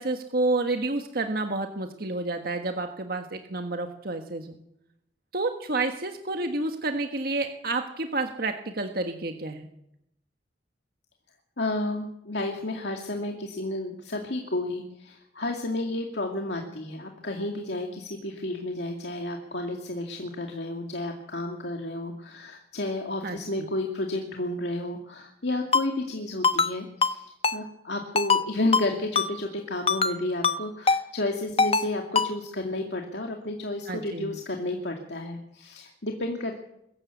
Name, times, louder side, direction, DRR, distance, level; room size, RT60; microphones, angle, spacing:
voice 1, 0.0-4.6 5.3-9.7 23.2-23.4 33.9-34.4, right 2 dB, 60° right, 5 dB, 1.5 m, -29 dB
voice 2, 11.6-36.5, left 2 dB, 75° left, 2 dB, 2.2 m, -31 dB
Ringtone, 25.7-25.8 26.4-26.7 27.0-27.1 27.4-27.6 28.2-28.4 28.7-28.9 29.2-29.3 29.9-30.1 30.4-30.6 30.9-31.0 31.6-31.9 32.2-32.3, left 4 dB, 35° left, 1.0 m, -22 dB
22.5 x 14.0 x 8.4 m, 0.81 s
head